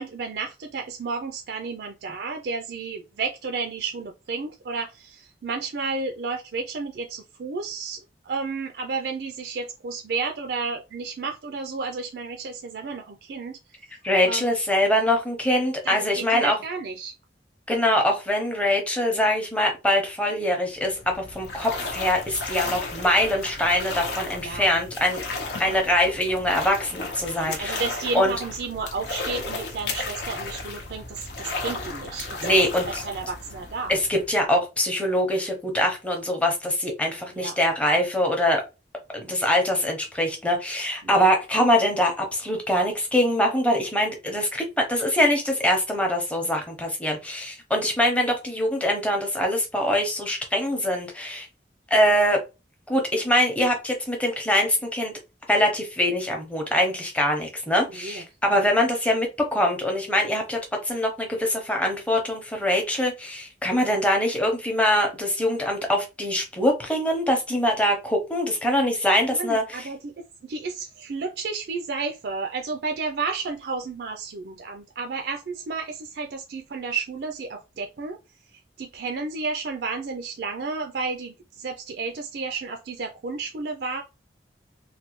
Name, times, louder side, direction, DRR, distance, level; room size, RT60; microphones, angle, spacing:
voice 1, 0.0-13.6 14.3-14.5 15.8-17.1 22.6-22.9 24.4-24.7 27.3-32.6 32.8-34.0 37.3-37.6 41.0-41.3 58.0-58.2 69.3-78.2 78.8-84.0, right 4 dB, 65° right, 4 dB, 0.4 m, -32 dB
voice 2, 14.0-16.5 17.7-25.2 25.6-27.8 28.1-28.3 32.4-33.0 33.9-38.6 39.1-51.5 51.9-52.4 52.9-55.1 55.5-60.6 60.8-69.9, left 1 dB, 10° left, 1 dB, 0.7 m, -23 dB
sound 1, 20.7-34.5, left 3 dB, 75° left, 0.7 m, -34 dB
3.2 x 2.2 x 3.0 m, 0.27 s
head